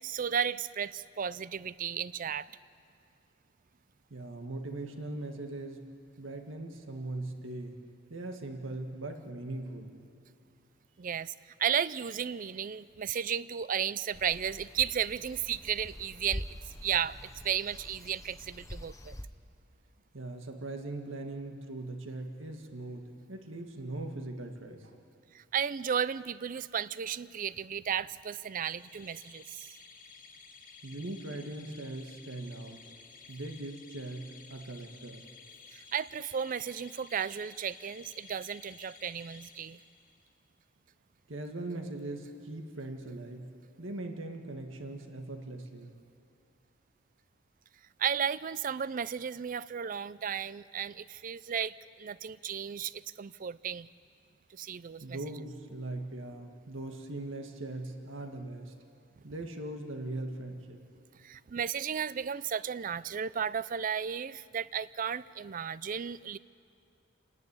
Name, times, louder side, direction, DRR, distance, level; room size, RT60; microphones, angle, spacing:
voice 1, 0.0-2.5 11.0-11.3 11.6-19.2 25.3-29.7 35.7-39.8 48.0-53.9 54.5-55.2 61.2-66.4, right 8 dB, 45° right, 18 dB, 0.4 m, -34 dB
voice 2, 4.1-5.9 6.2-7.8 8.1-9.9 20.1-24.9 30.8-32.8 33.3-35.2 41.3-43.5 43.8-45.9 55.0-58.7 59.2-60.8, right 2 dB, 90° right, 4 dB, 1.9 m, -40 dB
sound 1, 14.1-19.3, left 1 dB, 15° left, 0.8 m, -45 dB
sound 2, 28.4-40.3, left 5 dB, 45° left, 1.7 m, -54 dB
28.0 x 10.5 x 9.6 m, 2.5 s
head